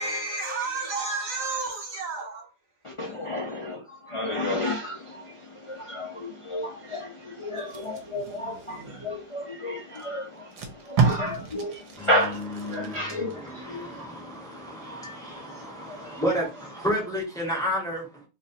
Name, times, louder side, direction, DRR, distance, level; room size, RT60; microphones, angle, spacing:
voice 1, 0.0-2.5, right 3 dB, 55° right, 1.2 m, -31 dB
voice 2, 2.8-16.2, left 1 dB, 50° left, 0.3 m, -32 dB
Packing tape duct tape, 7.6-9.2 9.9-10.0 10.4-13.4 13.8-14.0, right 5 dB, 75° right, 1.4 m, -30 dB
voice 3, 12.0-18.2, equal, ahead, 1.1 m, -32 dB
3.2 x 2.5 x 4.1 m
omnidirectional pair, 1.9 m